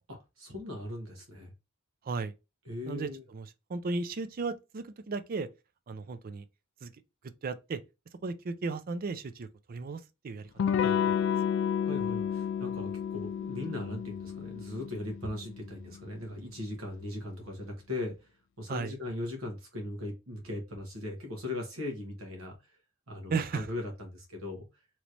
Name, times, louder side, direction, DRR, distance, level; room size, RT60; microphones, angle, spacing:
voice 1, 0.1-1.5 2.6-3.2 11.8-18.1 18.6-22.5 23.1-24.7, left 1 dB, 75° right, 1.3 m, -39 dB
voice 2, 2.9-5.5 5.9-6.4 6.8-6.9 7.4-7.8 8.2-11.1 18.7-18.9 23.3-23.7, right 4 dB, 45° right, 0.4 m, -35 dB
Electric guitar / Strum, 10.6-16.0, left 8 dB, 60° left, 0.3 m, -31 dB
3.1 x 3.0 x 2.5 m
head